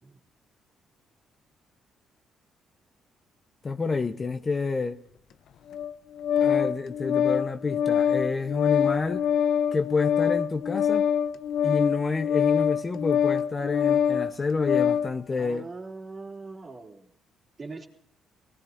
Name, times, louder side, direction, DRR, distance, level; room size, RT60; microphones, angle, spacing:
voice 1, 3.6-5.0 6.4-9.2 9.7-11.1 11.6-15.7, left 4 dB, 30° left, 0.9 m, -28 dB
Organ, 5.7-15.1, left 8 dB, 75° left, 0.7 m, -24 dB
voice 2, 15.3-17.1 17.6-17.9, right 3 dB, 35° right, 3.1 m, -41 dB
23.0 x 18.5 x 2.6 m
cardioid pair, 90°, 0 cm